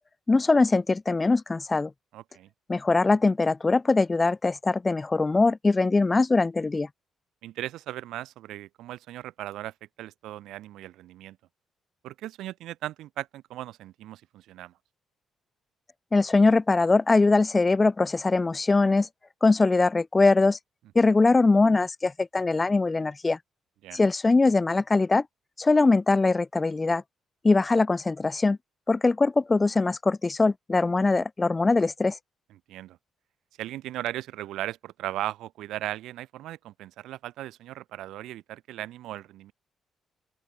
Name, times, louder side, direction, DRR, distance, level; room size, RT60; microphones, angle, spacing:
voice 1, 0.3-1.9 2.7-6.9 16.1-19.1 19.4-20.6 20.9-23.4 23.9-25.2 25.6-27.0 27.4-28.6 28.9-32.2, left 3 dB, 25° left, 1.3 m, -22 dB
voice 2, 2.1-2.5 7.4-11.4 12.0-14.7 23.8-24.0 32.7-33.0 33.6-39.5, right 14 dB, 85° right, 5.5 m, -37 dB
open air
cardioid pair, 90°, 0 cm